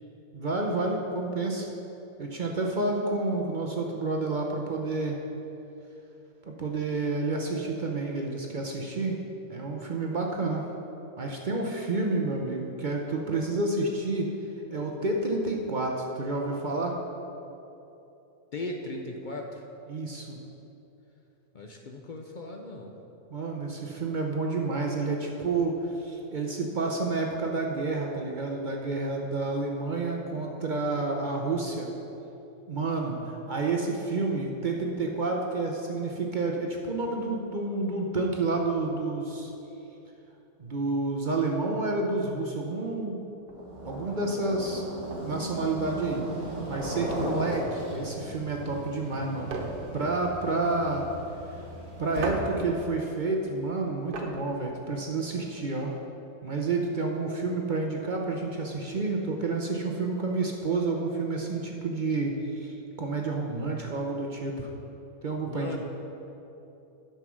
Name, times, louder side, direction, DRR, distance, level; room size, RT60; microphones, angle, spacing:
voice 1, 0.3-1.7 2.2-5.3 6.5-10.7 11.1-14.3 14.7-17.0 19.9-20.4 23.3-31.9 32.7-39.5 40.6-43.3 43.8-44.8 45.2-46.2 46.7-49.5 49.9-51.1 52.0-56.0 56.4-64.7 65.2-65.8, right 3 dB, 45° right, 0 dB, 0.6 m, -29 dB
voice 2, 18.5-19.6 21.5-22.9 65.4-65.8, left 2 dB, 60° left, 2 dB, 0.5 m, -37 dB
sound 1, 43.4-55.6, right 3 dB, 80° right, 1.5 m, -41 dB
sound 2, 43.5-52.6, right 1 dB, 30° right, 1.9 m, -37 dB
9.1 x 5.7 x 6.2 m, 3.0 s
omnidirectional pair, 1.6 m